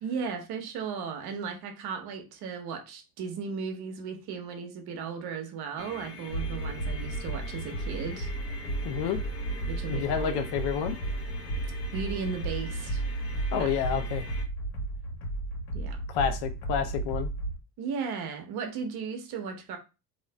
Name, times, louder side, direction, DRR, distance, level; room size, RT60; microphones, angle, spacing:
voice 1, 0.0-8.3 9.7-10.5 11.9-13.0 13.5-13.7 15.7-16.0 17.8-19.8, right 6 dB, 55° right, 5 dB, 0.9 m, -36 dB
sound 1, 5.8-14.4, left 4 dB, 30° left, 1.1 m, -44 dB
sound 2, 6.3-17.6, right 2 dB, 75° left, 1.3 m, -33 dB
voice 2, 8.8-9.2 9.9-11.0 13.5-14.2 16.1-17.3, left 8 dB, 55° left, 8 dB, 0.6 m, -29 dB
2.8 x 2.4 x 3.2 m, 0.29 s
supercardioid pair, 105°, 45 cm